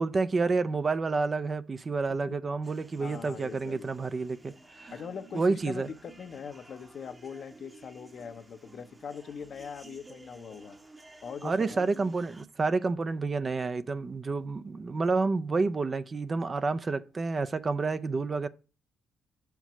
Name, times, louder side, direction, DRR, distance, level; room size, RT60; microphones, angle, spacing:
voice 1, 0.0-4.9 5.3-5.9 11.4-18.5, right 3 dB, 35° right, 0.4 m, -29 dB
sound 1, 2.6-12.4, right 2 dB, 20° right, 0.9 m, -53 dB
voice 2, 3.0-4.1 4.9-10.8 11.2-11.9, left 6 dB, 55° left, 0.7 m, -42 dB
5.7 x 4.6 x 5.9 m
cardioid pair, 90°, 0 cm